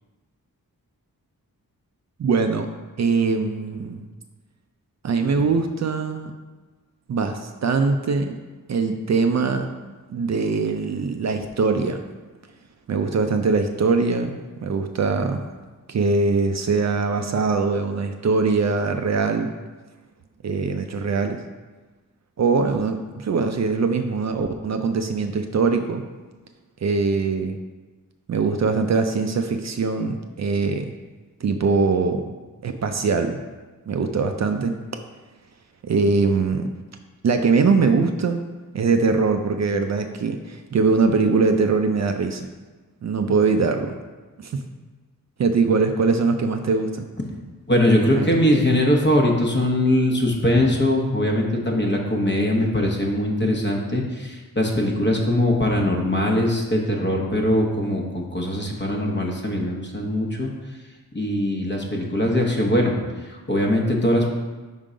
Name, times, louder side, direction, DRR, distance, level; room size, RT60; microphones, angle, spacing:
voice 1, 2.2-2.7 3.0-4.0 5.0-6.3 7.1-8.3 8.7-9.7 10.1-12.0 12.9-15.4 15.9-19.5 20.4-21.4 22.4-26.0 26.8-27.6 28.3-30.9 31.4-32.2 32.6-33.4 33.9-34.8 35.8-36.7 37.2-38.4 38.7-42.5 43.0-44.0 44.4-44.6 45.4-47.1 48.1-48.4, right 4 dB, 50° right, 6 dB, 0.4 m, -22 dB
voice 2, 47.7-60.5 61.1-63.0 63.2-64.3, left 1 dB, 30° left, 0 dB, 0.9 m, -21 dB
5.5 x 3.7 x 5.0 m, 1.3 s
wide cardioid pair, 115°, 35 cm